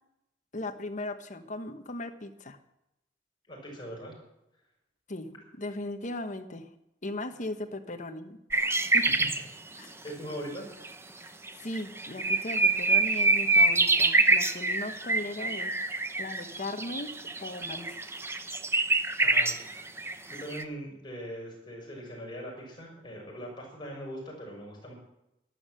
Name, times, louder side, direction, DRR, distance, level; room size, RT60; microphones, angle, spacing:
voice 1, 0.5-2.6 5.1-5.3 5.6-6.7 7.0-8.4 8.9-9.1 9.8-9.9 11.2-11.3 11.6-15.7 16.2-17.1 17.4-18.0, left 2 dB, 40° left, 7 dB, 1.2 m, -37 dB
voice 2, 3.5-4.1 10.0-10.7 19.2-19.5 19.8-24.9, equal, 25° left, -2 dB, 5.9 m, -41 dB
sound 1, 8.5-9.4 10.8-10.9 11.5-11.6 11.8-20.6, right 2 dB, 15° right, 0.7 m, -25 dB
12.0 x 12.0 x 7.6 m, 0.88 s
head